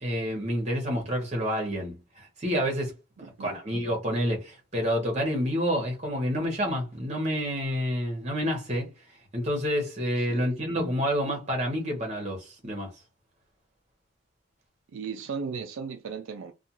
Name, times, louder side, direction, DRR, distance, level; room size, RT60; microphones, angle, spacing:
voice 1, 0.0-2.9 3.4-8.9 9.3-12.9, equal, 35° right, 1.0 m, -28 dB
voice 2, 3.2-3.5 10.2-10.5 14.9-16.5, right 5 dB, 75° right, 0.4 m, -36 dB
2.4 x 2.3 x 2.8 m
head